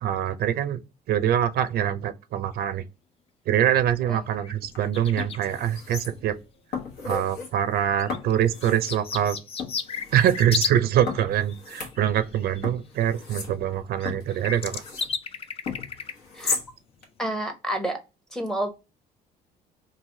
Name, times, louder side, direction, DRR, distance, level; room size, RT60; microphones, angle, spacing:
voice 1, 0.0-0.8 1.1-2.8 3.5-6.4 7.0-9.4 10.1-14.8, right 10 dB, 65° right, 0.5 m, -24 dB
sound 1, 4.2-4.3 4.4-5.5 6.8-6.9 8.0-10.8 11.0-12.6 13.7-13.8 14.0-16.1 16.7-16.8, left 6 dB, 35° left, 0.4 m, -34 dB
sound 2, 4.6-4.8 5.2-6.4 6.7-7.5 8.1-9.0 9.6-10.4 11.1-12.3 12.6-15.1 15.7-16.7 17.0-17.1, left 4 dB, 75° left, 1.1 m, -35 dB
voice 2, 17.2-18.0 18.3-18.7, right 1 dB, 5° left, 0.7 m, -29 dB
3.1 x 2.4 x 2.6 m
cardioid pair, 110°, 17 cm